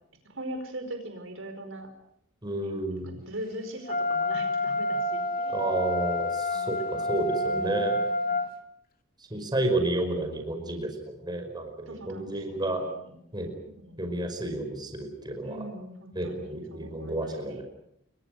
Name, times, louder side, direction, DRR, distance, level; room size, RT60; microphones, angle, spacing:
voice 1, 0.3-1.9 2.5-2.8 3.0-5.8 6.5-7.0 7.3-8.3 9.3-9.5 11.9-13.2 13.7-14.1 15.4-17.6, right 1 dB, 70° right, 6 dB, 4.8 m, -41 dB
voice 2, 2.4-3.2 5.5-8.0 9.3-12.8 13.3-13.5 14.0-15.6 16.1-17.6, right 1 dB, 20° right, 4 dB, 5.3 m, -31 dB
Wind instrument woodwind instrument, 3.9-8.5, left 1 dB, 45° left, 2.4 m, -28 dB
29.0 x 23.0 x 6.5 m, 0.74 s
head